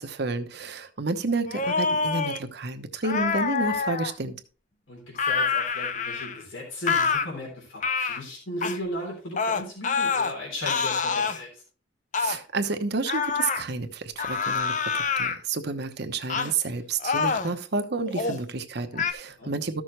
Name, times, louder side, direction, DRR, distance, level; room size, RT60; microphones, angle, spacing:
voice 1, 0.0-4.4 12.2-19.8, right 3 dB, 55° right, 1.0 m, -30 dB
sound 1, 1.5-2.4 3.0-4.1 5.2-6.4 6.9-7.3 7.8-8.2 8.6-8.8 9.4-10.3 10.7-11.4 12.1-12.4 13.1-13.6 14.2-15.4 16.3-16.5 17.0-17.5 18.1-18.4 19.0-19.1, left 5 dB, 40° left, 0.6 m, -26 dB
voice 2, 4.9-11.6 19.4-19.5, left 1 dB, 80° left, 3.5 m, -36 dB
13.5 x 6.3 x 3.2 m
head